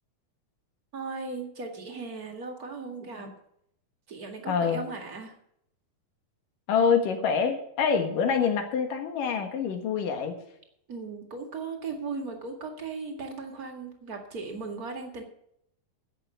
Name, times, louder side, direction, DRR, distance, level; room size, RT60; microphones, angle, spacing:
voice 1, 0.9-3.3 4.1-5.3 10.9-15.2, right 4 dB, 35° right, 3 dB, 1.7 m, -37 dB
voice 2, 4.5-4.8 6.7-10.4, left 6 dB, 70° left, 5 dB, 3.1 m, -26 dB
10.5 x 8.1 x 7.7 m, 0.72 s
omnidirectional pair, 4.1 m